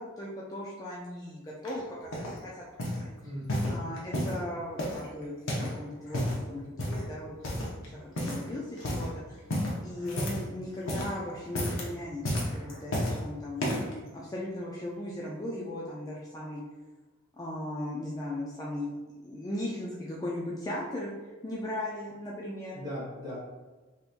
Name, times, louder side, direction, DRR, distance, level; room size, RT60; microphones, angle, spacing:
voice 1, 0.0-2.6 3.0-3.3 3.7-5.3 5.6-7.3 7.8-9.4 9.8-13.6 14.1-16.6 17.3-18.9 19.2-21.1 21.4-22.8, left 1 dB, 15° left, -5 dB, 0.3 m, -37 dB
sound 1, 1.6-2.4 2.8-3.1 3.5-4.4 4.8-5.8 6.0-6.4 6.8-7.1 7.4-7.9 8.2-8.5 8.8-9.1 9.5-10.5 10.8-11.2 11.5-11.9 12.2-13.2 13.6-13.9 14.6-14.7, left 1 dB, 65° left, 0.7 m, -31 dB
voice 2, 3.2-3.9 22.7-23.4, equal, 20° right, -6 dB, 1.2 m, -39 dB
3.5 x 2.9 x 2.4 m, 1.2 s
head